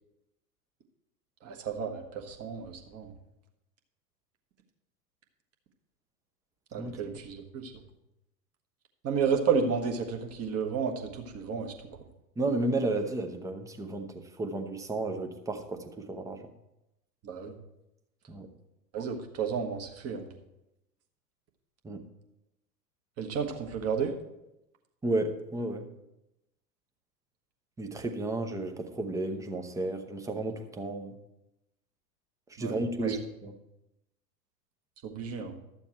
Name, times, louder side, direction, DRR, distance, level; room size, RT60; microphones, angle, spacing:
voice 1, 1.4-3.1 6.7-7.7 9.0-11.7 17.2-17.5 18.9-20.3 23.2-24.2 32.6-33.2 35.0-35.5, right 6 dB, 30° right, 3 dB, 1.3 m, -32 dB
voice 2, 6.8-7.2 12.4-16.4 18.3-18.5 21.8-22.0 25.0-25.9 27.8-31.1 32.5-33.5, right 2 dB, 5° right, 5 dB, 0.7 m, -33 dB
12.5 x 7.2 x 4.4 m, 0.90 s
figure-of-eight pair, 95°, 50 cm